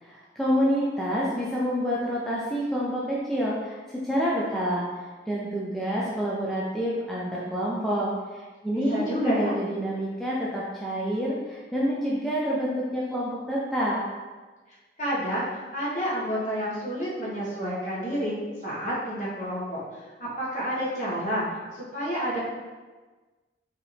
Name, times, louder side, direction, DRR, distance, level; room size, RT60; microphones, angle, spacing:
voice 1, 0.0-4.9 5.3-14.0, equal, ahead, -6 dB, 0.4 m, -28 dB
voice 2, 8.7-9.5 15.0-15.4 15.7-18.4 18.6-19.8 20.4-21.5 21.7-22.4, equal, 45° left, -8 dB, 1.5 m, -29 dB
4.8 x 2.9 x 3.3 m, 1.3 s
head